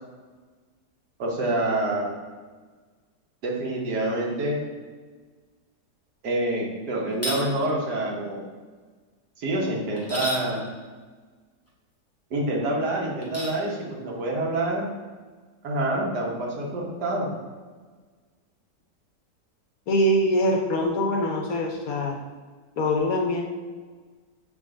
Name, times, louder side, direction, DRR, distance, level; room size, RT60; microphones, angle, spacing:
voice 1, 1.2-2.1 3.4-4.6 6.2-8.4 9.4-10.6 12.3-14.9 15.6-17.3, right 1 dB, 70° right, -1 dB, 1.6 m, -27 dB
sound 1, 7.1-7.4 10.0-10.5 13.2-13.6, equal, 15° left, 0.5 m, -31 dB
voice 2, 19.9-22.2 22.8-23.4, equal, 65° left, 1 dB, 1.0 m, -23 dB
7.1 x 3.7 x 3.7 m, 1.4 s
omnidirectional pair, 1.9 m